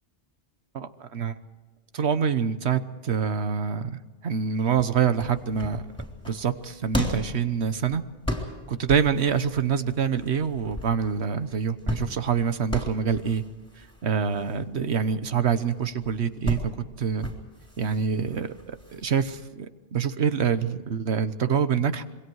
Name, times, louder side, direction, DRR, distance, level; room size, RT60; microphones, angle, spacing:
voice 1, 0.7-1.3 1.9-5.8 6.3-8.0 8.7-13.4 14.0-16.6 17.0-17.3 17.8-22.0, right 7 dB, 75° right, 11 dB, 1.3 m, -26 dB
sound 1, 4.8-19.4, left 1 dB, 5° left, 3.6 m, -36 dB
26.5 x 23.0 x 4.8 m, 1.3 s
omnidirectional pair, 1.1 m